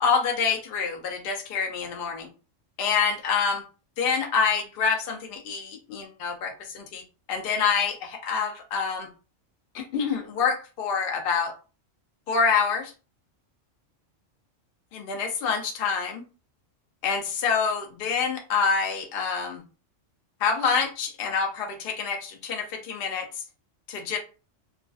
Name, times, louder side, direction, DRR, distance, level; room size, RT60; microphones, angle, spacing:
voice 1, 0.0-2.3 2.8-3.6 4.0-7.0 7.3-9.1 9.7-11.5 12.3-12.9 14.9-16.2 17.0-19.6 20.4-23.3 23.9-24.2, left 5 dB, 60° left, 2 dB, 0.6 m, -26 dB
2.3 x 2.3 x 2.3 m, 0.34 s
omnidirectional pair, 1.3 m